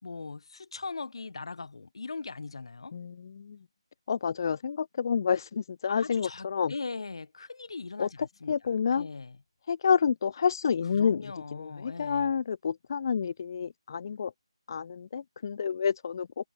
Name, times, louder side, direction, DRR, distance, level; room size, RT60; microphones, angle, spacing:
voice 1, 0.0-3.0 5.9-8.5 8.9-9.4 10.9-12.3, left 4 dB, 65° left, 2.2 m, -40 dB
voice 2, 2.9-3.6 4.1-6.7 8.0-8.1 8.5-9.1 9.7-14.3 14.7-16.5, left 6 dB, 45° left, 0.4 m, -29 dB
figure-of-eight pair, 160°, 3 cm